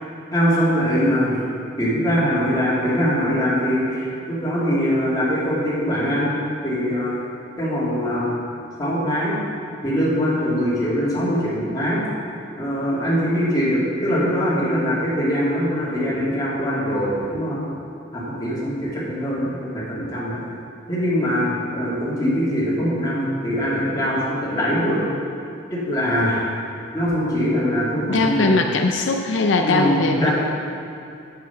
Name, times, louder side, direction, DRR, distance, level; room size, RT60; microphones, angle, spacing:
voice 1, 0.3-1.4 1.8-6.3 6.6-7.2 7.6-8.3 8.8-9.4 9.8-12.0 12.6-17.6 18.1-20.4 20.9-25.0 25.7-26.5 26.9-28.5 29.6-30.3, equal, 20° left, -8 dB, 2.4 m, -22 dB
voice 2, 28.1-30.3, left 3 dB, 75° left, 3 dB, 0.5 m, -20 dB
7.8 x 7.5 x 5.7 m, 2.6 s
head